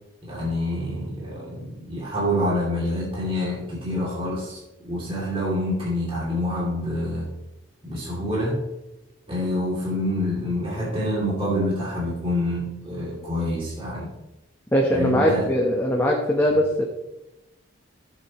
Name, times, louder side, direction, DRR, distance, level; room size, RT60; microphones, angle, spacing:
voice 1, 0.2-7.3 7.8-8.7 9.3-14.1 14.9-15.5, left 1 dB, 25° right, -6 dB, 2.7 m, -27 dB
voice 2, 14.7-16.8, equal, 10° left, -1 dB, 1.1 m, -21 dB
16.0 x 7.4 x 3.1 m, 0.94 s
head